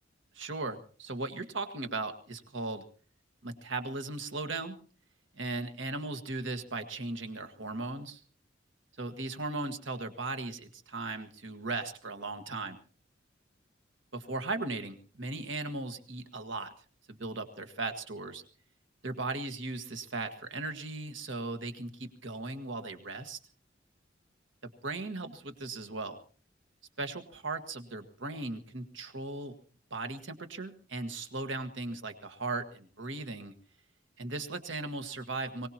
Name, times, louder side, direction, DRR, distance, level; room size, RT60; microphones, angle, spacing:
voice 1, 0.3-2.8 3.4-4.8 5.4-8.2 9.0-12.8 14.1-16.7 17.1-18.4 19.0-23.4 24.8-26.2 27.0-29.5 29.9-33.5 34.2-35.7, right 3 dB, 75° right, 7 dB, 1.7 m, -37 dB
23.5 x 18.5 x 2.9 m, 0.41 s
head